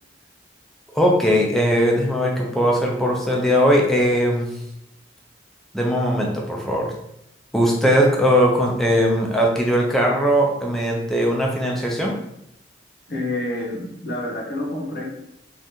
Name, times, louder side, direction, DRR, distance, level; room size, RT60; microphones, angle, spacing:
voice 1, 0.9-4.5 5.7-6.9 7.5-12.1, equal, ahead, -2 dB, 0.4 m, -19 dB
voice 2, 13.1-15.1, left 1 dB, 50° left, -2 dB, 0.8 m, -28 dB
2.7 x 2.5 x 3.5 m, 0.80 s
head